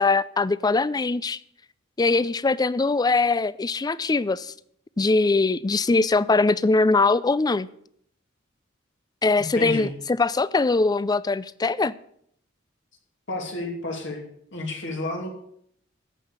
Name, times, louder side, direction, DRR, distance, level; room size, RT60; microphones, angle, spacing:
voice 1, 0.0-1.4 2.0-4.5 5.0-7.7 9.2-11.9, left 3 dB, 20° left, 0.4 m, -22 dB
voice 2, 9.4-9.9 13.3-14.2 14.5-15.3, left 2 dB, 65° left, 2.7 m, -31 dB
14.5 x 5.6 x 8.2 m
head